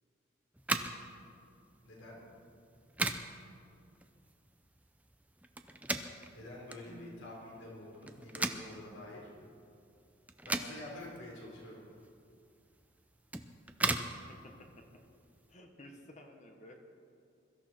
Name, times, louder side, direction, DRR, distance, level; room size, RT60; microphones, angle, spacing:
sound 1, 0.5-15.5, right 2 dB, 10° right, 0.6 m, -40 dB
voice 1, 1.8-2.2 6.3-9.3 10.5-11.8, left 1 dB, 85° left, -3 dB, 4.1 m, -48 dB
voice 2, 6.8-7.2 14.0-14.8 15.5-16.8, equal, 35° left, 3 dB, 1.3 m, -53 dB
22.0 x 14.0 x 4.5 m, 2.4 s
head